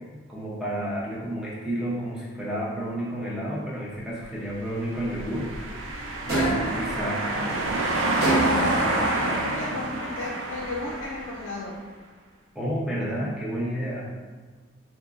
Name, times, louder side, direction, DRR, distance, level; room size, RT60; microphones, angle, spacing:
voice 1, 0.3-5.5 6.3-7.3 12.5-14.1, equal, 5° right, -6 dB, 0.6 m, -30 dB
sound 1, 4.8-11.6, right 2 dB, 80° right, 0.5 m, -28 dB
voice 2, 6.3-7.1 8.0-11.8, left 2 dB, 70° left, -3 dB, 0.4 m, -33 dB
sound 2, 6.3-6.8 8.2-8.8, right 2 dB, 50° right, 0.9 m, -24 dB
3.6 x 2.9 x 2.4 m, 1.4 s
head